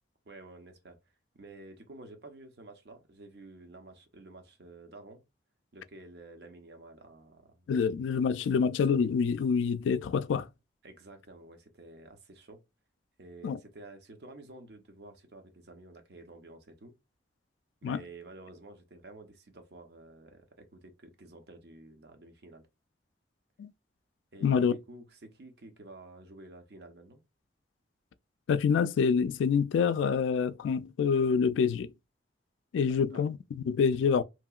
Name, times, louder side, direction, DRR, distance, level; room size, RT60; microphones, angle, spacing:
voice 1, 0.2-1.0 1.3-5.2 5.7-7.7 10.8-12.6 13.2-16.9 17.8-22.7 24.3-27.2 33.1-33.2, right 2 dB, 60° right, 0.7 m, -51 dB
voice 2, 7.7-10.5 13.4-13.6 17.8-18.0 23.6-23.7 24.4-24.7 28.5-31.9 32.7-34.2, left 6 dB, 90° left, 0.3 m, -26 dB
2.9 x 2.8 x 2.3 m
head